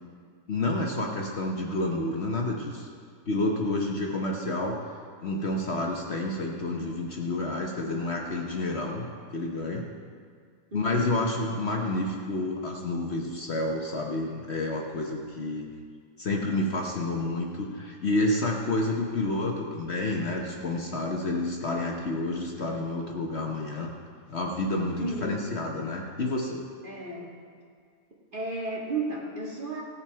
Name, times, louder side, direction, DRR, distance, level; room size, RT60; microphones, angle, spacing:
voice 1, 0.5-2.9 3.3-4.8 5.2-9.1 9.3-9.9 10.7-15.7 16.2-23.9 24.3-26.6, left 2 dB, 50° left, 0 dB, 1.1 m, -29 dB
voice 2, 10.7-11.2 25.0-25.5 26.8-27.4 28.3-29.8, right 3 dB, 35° right, -3 dB, 1.9 m, -33 dB
17.0 x 7.3 x 4.6 m, 2.1 s
omnidirectional pair, 1.6 m